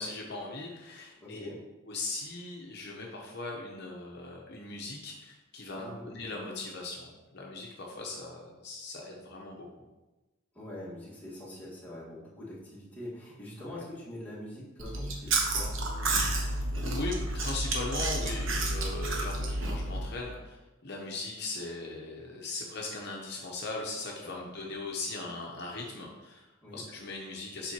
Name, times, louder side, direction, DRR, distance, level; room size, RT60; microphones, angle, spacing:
voice 1, 0.0-1.5 1.9-9.9 13.6-13.8 16.2-20.6 20.8-26.5 26.7-27.7, left 2 dB, 55° left, -1 dB, 0.8 m, -39 dB
voice 2, 1.2-1.6 5.7-6.1 10.5-15.8 24.2-24.5 26.6-26.8, left 1 dB, 10° left, -8 dB, 1.7 m, -44 dB
Chewing mastication, 14.8-20.1, right 2 dB, 75° right, 1.0 m, -31 dB
7.4 x 5.0 x 2.9 m, 1.1 s
head